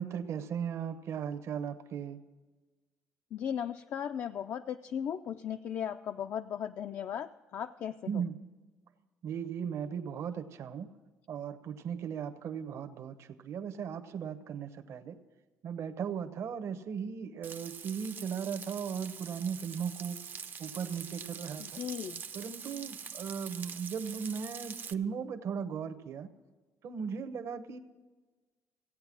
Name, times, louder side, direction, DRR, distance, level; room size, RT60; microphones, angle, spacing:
voice 1, 0.0-2.2 8.1-8.4 9.2-10.9 11.3-15.2 15.6-20.2 20.6-21.8 22.3-26.3 26.8-27.8, right 7 dB, 55° right, 9 dB, 0.9 m, -37 dB
voice 2, 3.3-8.2 21.6-22.2, left 9 dB, 50° left, 7 dB, 0.4 m, -37 dB
Frying (food), 17.4-24.9, right 6 dB, 35° right, 0.5 m, -44 dB
16.0 x 8.9 x 6.1 m, 1.3 s
cardioid pair, 130°, 6 cm